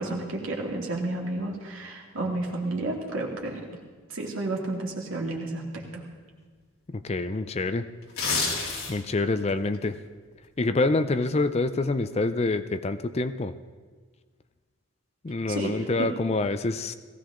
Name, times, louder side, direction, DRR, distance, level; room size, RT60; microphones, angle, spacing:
voice 1, 0.0-3.7 4.1-5.6 5.9-6.0 15.5-15.7 16.0-16.1, right 2 dB, 70° right, -1 dB, 2.6 m, -31 dB
voice 2, 6.9-7.9 8.9-9.9 10.6-13.5 15.2-16.9, left 3 dB, 30° left, 11 dB, 0.4 m, -26 dB
sound 1, 8.0-9.2 9.6-9.8, left 4 dB, 80° left, 2.9 m, -28 dB
18.0 x 16.0 x 3.8 m, 1.5 s
head